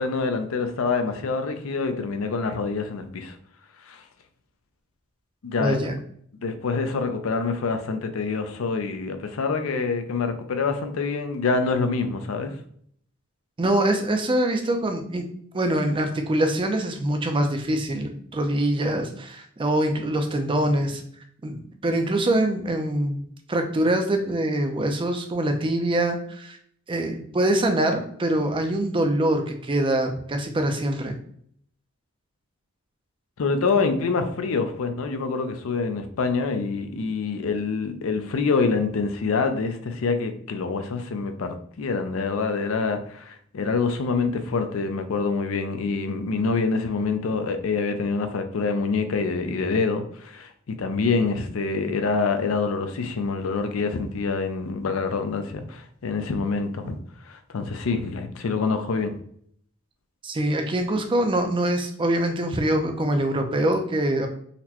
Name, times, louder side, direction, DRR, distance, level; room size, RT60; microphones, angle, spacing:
voice 1, 0.0-3.3 3.9-4.0 5.4-5.8 6.4-12.5 33.4-57.0 57.3-59.1, left 4 dB, 70° left, 7 dB, 0.4 m, -26 dB
voice 2, 5.6-6.0 13.6-15.2 15.5-21.0 21.4-23.2 23.5-26.6 26.9-31.2 60.2-64.3, right 1 dB, 25° right, 5 dB, 0.4 m, -24 dB
4.0 x 2.1 x 2.8 m, 0.63 s
head